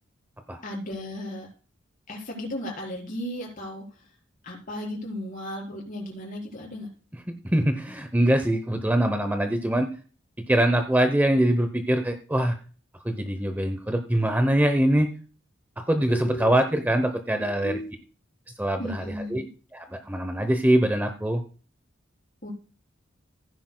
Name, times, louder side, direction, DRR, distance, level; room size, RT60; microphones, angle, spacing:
voice 1, 0.6-1.5 2.1-3.8 4.4-6.9 16.1-16.6 17.4-17.9 18.8-19.4 22.4-22.5, left 1 dB, 45° left, -1 dB, 4.0 m, -35 dB
voice 2, 7.3-9.9 10.5-12.6 13.0-15.1 15.9-17.8 18.6-19.4 19.7-21.4, right 1 dB, 10° right, 7 dB, 0.7 m, -23 dB
15.5 x 10.0 x 2.2 m, 0.38 s
head